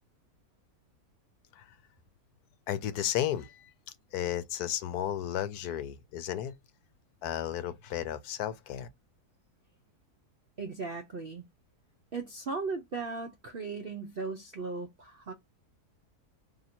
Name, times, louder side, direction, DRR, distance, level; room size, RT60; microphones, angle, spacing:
voice 1, 2.7-3.7 4.1-6.5 7.2-8.9, left 11 dB, 80° left, 1.1 m, -33 dB
voice 2, 10.6-11.4 12.1-15.3, right 4 dB, 60° right, 0.6 m, -37 dB
2.9 x 2.6 x 4.2 m
omnidirectional pair, 1.7 m